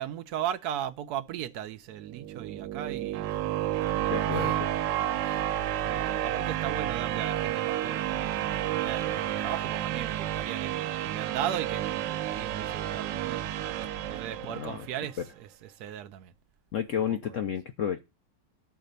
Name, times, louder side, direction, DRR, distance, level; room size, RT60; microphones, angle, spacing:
voice 1, 0.0-3.3 4.0-4.5 4.9-5.4 5.9-13.5 14.1-16.3 17.1-17.4, right 10 dB, 65° right, 1.1 m, -37 dB
sound 1, 2.0-15.0, right 12 dB, 85° right, 1.4 m, -31 dB
voice 2, 4.1-4.7 5.0-5.2 13.9-14.2 14.5-14.9 15.2-15.3 16.7-18.0, left 8 dB, 70° left, 0.7 m, -32 dB
12.0 x 4.1 x 6.6 m
omnidirectional pair, 2.0 m